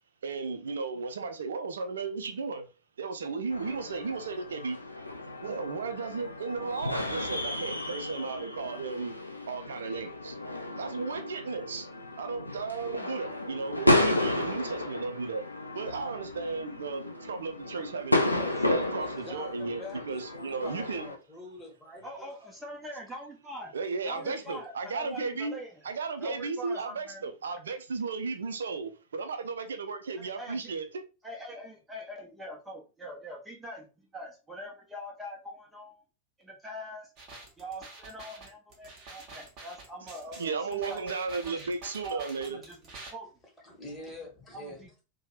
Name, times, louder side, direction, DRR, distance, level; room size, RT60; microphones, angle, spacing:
voice 1, 0.2-2.7 3.0-4.8 5.4-9.1 9.5-10.4 10.8-11.9 12.2-15.4 15.7-18.2 18.6-21.0 23.7-25.6 25.8-31.0 40.4-42.6, right 4 dB, 65° right, 0.5 m, -34 dB
sound 1, 3.5-21.1, left 1 dB, 85° left, 0.4 m, -32 dB
voice 2, 18.4-22.3 24.1-24.6 43.6-44.8, left 2 dB, 15° left, 1.3 m, -45 dB
voice 3, 22.0-23.7 24.0-25.9 26.2-27.3 30.2-30.8 31.2-36.0 36.4-37.1 37.6-41.0 41.4-41.6 42.0-42.3 42.5-42.8 43.1-43.3 44.5-45.0, equal, 10° right, 0.8 m, -43 dB
sound 2, 37.2-43.1, right 2 dB, 35° right, 1.0 m, -47 dB
2.7 x 2.2 x 3.0 m
figure-of-eight pair, 90°, 0 cm